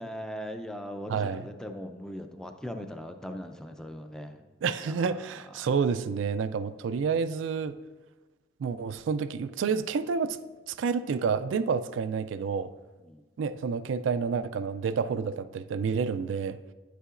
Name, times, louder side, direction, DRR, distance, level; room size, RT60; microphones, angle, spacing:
voice 1, 0.0-4.4 4.8-5.3 5.6-5.7 13.0-13.2, equal, 5° left, 6 dB, 0.4 m, -39 dB
voice 2, 1.1-1.5 4.6-7.8 8.6-10.4 10.7-12.7 13.4-16.6, right 5 dB, 90° right, 12 dB, 0.3 m, -29 dB
9.7 x 8.2 x 2.5 m, 1.2 s
head